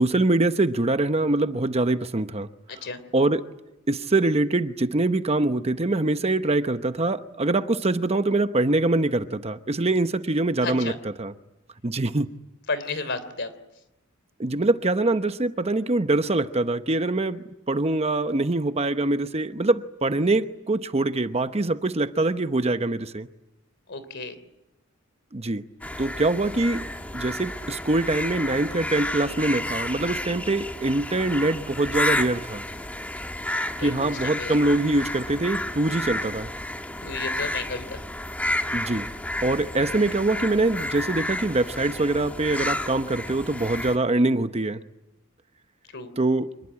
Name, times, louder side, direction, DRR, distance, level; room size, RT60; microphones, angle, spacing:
voice 1, 0.0-2.5 3.1-3.4 3.9-10.9 11.2-11.3 11.8-12.3 14.4-23.3 25.3-25.6 26.0-26.8 27.1-32.6 33.8-36.5 38.7-39.1 39.4-44.8 46.2-46.5, right 2 dB, 30° right, 0.9 m, -24 dB
voice 2, 2.7-3.0 10.6-11.0 12.7-13.5 23.9-24.4 33.8-34.6 37.0-38.0 45.9-46.1, left 3 dB, 60° left, 3.3 m, -32 dB
sound 1, 25.8-44.0, left 1 dB, 5° left, 1.4 m, -31 dB
27.0 x 20.5 x 9.7 m
head